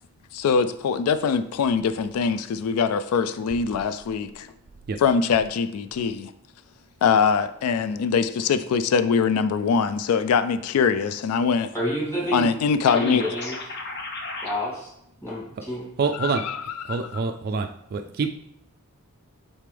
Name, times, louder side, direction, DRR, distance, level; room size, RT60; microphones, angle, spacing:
voice 1, 0.3-4.5 5.0-6.3 7.0-11.7 12.3-13.3 16.1-17.2, left 6 dB, 80° left, 12 dB, 0.3 m, -23 dB
voice 2, 11.7-12.5 12.9-13.5 14.4-14.9 15.2-15.9 16.3-16.4, equal, 10° left, -7 dB, 2.5 m, -29 dB
sound 1, 12.9-14.5, left 2 dB, 50° left, 0.9 m, -34 dB
voice 3, 16.0-16.4 16.8-18.4, right 4 dB, 45° right, 6 dB, 0.3 m, -26 dB
6.7 x 4.2 x 3.3 m, 0.78 s
head